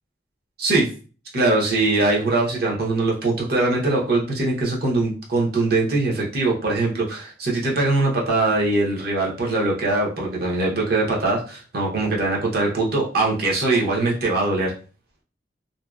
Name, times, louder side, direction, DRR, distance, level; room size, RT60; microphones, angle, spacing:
voice 1, 1.3-14.7, right 2 dB, 55° right, -2 dB, 0.7 m, -22 dB
2.6 x 2.0 x 2.3 m, 0.38 s
head